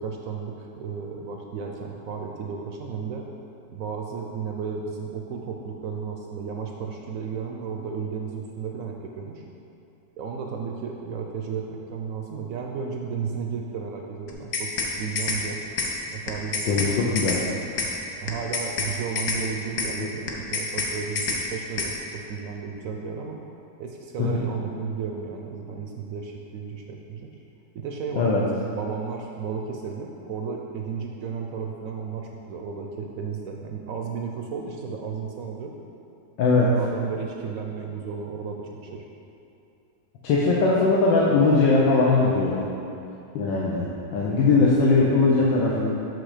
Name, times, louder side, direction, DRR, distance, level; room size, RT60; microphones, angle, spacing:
voice 1, 0.0-3.3 3.7-9.4 10.2-14.7 15.0-15.6 16.1-16.8 17.1-17.2 18.2-23.4 23.8-27.3 27.7-35.7 36.6-39.0 44.6-44.8, right 6 dB, 70° right, 1 dB, 0.8 m, -33 dB
sound 1, 14.3-14.9 15.2-15.4 15.8-15.9 16.3-16.9 17.2-17.4 17.8-17.9 18.3-18.9 19.2-19.4 19.8-19.9 20.3-20.9 21.2-21.4 21.8-21.9, left 4 dB, 65° left, 1.4 m, -27 dB
voice 2, 16.6-17.4 20.0-20.1 24.2-24.4 28.2-28.4 36.4-36.7 40.2-42.7 43.3-45.9, left 3 dB, 85° left, -4 dB, 1.5 m, -20 dB
6.3 x 6.3 x 4.9 m, 2.7 s
omnidirectional pair, 1.9 m